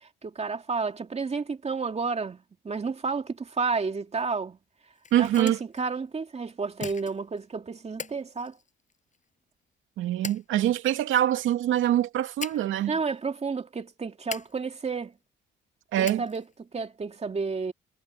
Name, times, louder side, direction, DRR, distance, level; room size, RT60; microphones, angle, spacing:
voice 1, 0.0-4.6 5.2-8.6 12.9-15.1 16.0-17.7, right 4 dB, 30° right, 2.4 m, -31 dB
sound 1, 4.8-5.8 6.8-7.4 8.0-9.2 10.2-11.0 12.4-12.9 13.1-13.2 14.3-15.0 16.0-16.6, left 5 dB, 40° left, 6.2 m, -40 dB
voice 2, 5.1-5.6 10.0-13.0 15.9-16.2, right 12 dB, 85° right, 2.4 m, -24 dB
cardioid pair, 90°, 20 cm